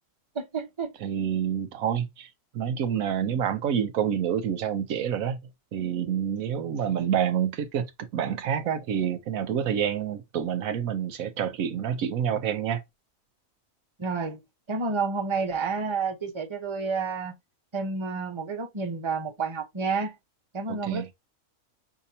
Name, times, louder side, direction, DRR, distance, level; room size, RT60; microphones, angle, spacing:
voice 1, 0.3-0.9 14.0-14.4 14.7-17.3 17.7-20.1 20.5-21.1, right 4 dB, 25° right, 0.9 m, -30 dB
voice 2, 1.0-2.3 2.5-5.4 5.7-12.8 20.8-21.0, right 8 dB, 85° right, 1.2 m, -28 dB
5.8 x 2.8 x 2.7 m
omnidirectional pair, 1.4 m